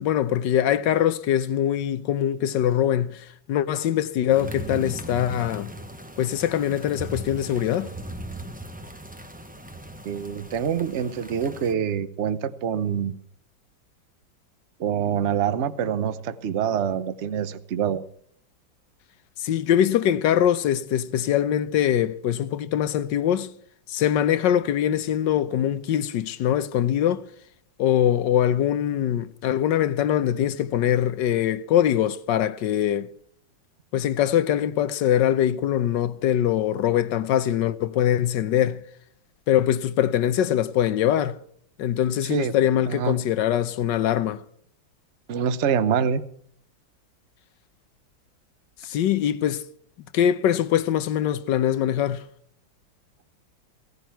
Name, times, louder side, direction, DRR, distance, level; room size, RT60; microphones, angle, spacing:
voice 1, 0.0-5.7 6.2-7.9 19.4-23.5 23.9-27.3 27.8-33.1 33.9-38.8 39.5-41.4 41.8-44.4 48.8-49.6 50.1-52.2, left 10 dB, 70° left, 1.4 m, -23 dB
sound 1, 4.3-11.7, right 1 dB, 10° right, 0.5 m, -38 dB
voice 2, 10.0-13.1 14.8-18.0 42.2-42.5 42.9-43.2 45.3-46.2, right 8 dB, 50° right, 1.0 m, -25 dB
17.5 x 15.0 x 4.6 m
omnidirectional pair, 2.1 m